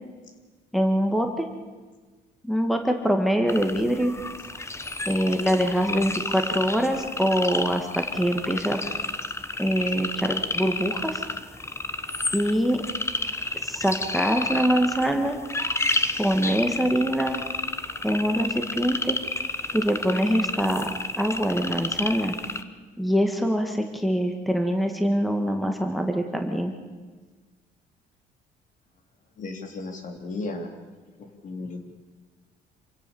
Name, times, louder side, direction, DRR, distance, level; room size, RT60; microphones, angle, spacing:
voice 1, 0.7-1.5 2.4-4.1 5.1-8.8 9.6-11.2 12.3-12.8 13.6-15.4 16.2-17.4 18.0-19.2 19.7-20.9 21.2-22.3 23.0-26.7, equal, ahead, 4 dB, 2.0 m, -24 dB
sound 1, 3.5-22.6, left 2 dB, 15° left, 1.2 m, -31 dB
voice 2, 29.4-30.7 31.2-31.8, left 2 dB, 50° left, 5 dB, 3.6 m, -35 dB
27.0 x 16.5 x 7.2 m, 1.3 s
cardioid pair, 110°, 17 cm